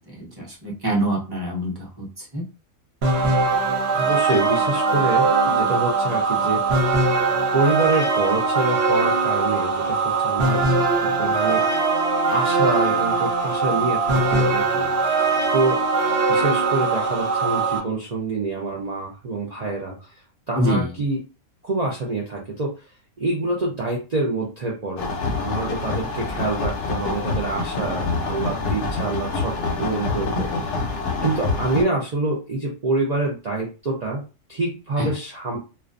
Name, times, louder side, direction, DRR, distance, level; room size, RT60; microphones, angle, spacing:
voice 1, 0.1-2.5 20.5-21.0 35.0-35.1, equal, 20° right, -3 dB, 0.7 m, -25 dB
sound 1, 3.0-17.8, right 4 dB, 55° right, 0.9 m, -21 dB
voice 2, 3.9-6.9 7.5-10.6 11.2-11.6 12.3-15.8 16.3-20.1 20.5-21.2 21.6-22.7 23.2-25.1 25.4-29.5 29.8-30.8 31.2-34.2 34.5-35.6, right 2 dB, 80° right, -3 dB, 0.3 m, -26 dB
sound 2, 25.0-31.8, left 3 dB, 65° left, 0.8 m, -26 dB
2.4 x 2.2 x 2.4 m, 0.33 s
omnidirectional pair, 1.5 m